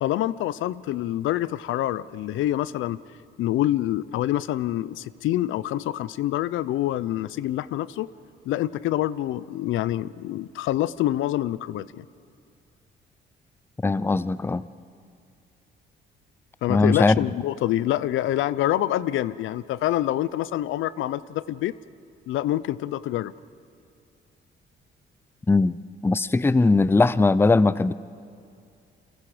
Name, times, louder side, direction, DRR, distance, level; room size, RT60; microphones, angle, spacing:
voice 1, 0.0-3.0 3.4-8.1 8.5-12.0 16.6-21.7 22.3-23.3, left 13 dB, 80° left, 18 dB, 0.6 m, -26 dB
voice 2, 13.8-14.6 16.7-17.2 25.5-25.8 26.0-27.9, left 3 dB, 10° left, 17 dB, 0.5 m, -20 dB
29.5 x 22.5 x 5.0 m, 2.4 s
cardioid pair, 90°, 20 cm